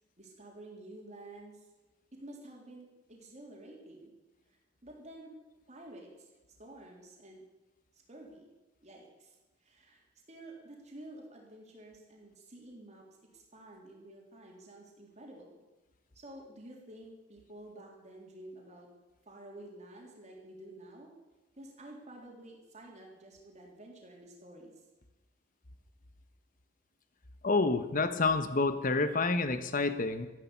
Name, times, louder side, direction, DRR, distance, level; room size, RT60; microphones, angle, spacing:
voice 1, 0.2-1.7 2.1-4.1 4.8-5.3 5.7-6.3 6.6-7.4 8.1-8.5 8.8-9.4 9.6-13.1 13.3-15.6 16.1-18.9 19.3-21.1 21.6-24.7, right 1 dB, 40° right, -1 dB, 3.7 m, -50 dB
voice 2, 27.4-30.3, left 3 dB, 45° left, 10 dB, 1.2 m, -28 dB
13.5 x 11.5 x 8.3 m, 1.1 s
head